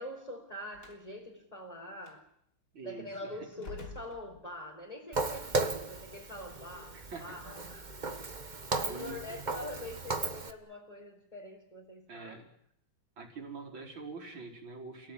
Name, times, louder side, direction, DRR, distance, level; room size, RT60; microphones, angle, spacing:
voice 1, 0.0-2.2 2.8-7.9 8.7-12.4, left 1 dB, 20° left, -3 dB, 4.7 m, -44 dB
Slam, 0.7-1.1 2.0-2.2 3.5-4.8, left 4 dB, 55° left, 3.8 m, -48 dB
voice 2, 2.7-3.5 6.9-7.5 8.9-9.4 12.1-12.5 13.2-15.1, right 4 dB, 85° right, 2 dB, 5.3 m, -45 dB
Walk footsteps, 5.1-10.5, right 3 dB, 25° right, 1.4 m, -36 dB
29.5 x 17.5 x 10.0 m, 0.71 s
omnidirectional pair, 2.1 m